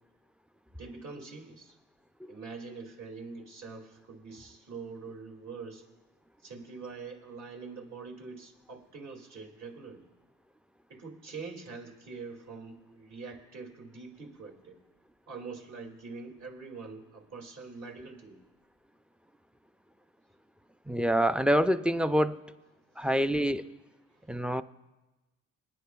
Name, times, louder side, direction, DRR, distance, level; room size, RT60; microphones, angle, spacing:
voice 1, 0.8-1.7 2.3-5.8 6.4-10.1 10.9-14.8 15.3-18.4 24.2-24.3, right 4 dB, 60° right, 0 dB, 2.3 m, -44 dB
voice 2, 20.9-22.4 23.0-23.7 24.3-24.6, equal, 5° right, 11 dB, 0.3 m, -26 dB
26.5 x 9.4 x 2.3 m, 1.1 s
cardioid pair, 90°, 30 cm